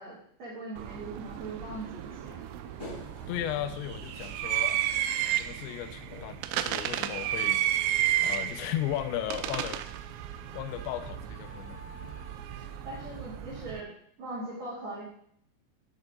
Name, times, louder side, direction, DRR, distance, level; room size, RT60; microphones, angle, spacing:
voice 1, 0.0-2.4 12.5-12.6 12.8-13.9 14.2-15.0, right 2 dB, 45° right, -8 dB, 3.2 m, -40 dB
sound 1, 0.8-13.8, right 12 dB, 80° right, 2.6 m, -33 dB
Female singing, 1.6-5.4 6.6-13.3, left 1 dB, 30° left, 0.6 m, -56 dB
sound 2, 2.8-13.6, left 1 dB, 10° left, 3.7 m, -52 dB
voice 2, 3.3-9.8 10.5-11.8, left 12 dB, 85° left, 9 dB, 2.9 m, -36 dB
10.5 x 6.5 x 3.7 m, 0.65 s
omnidirectional pair, 5.2 m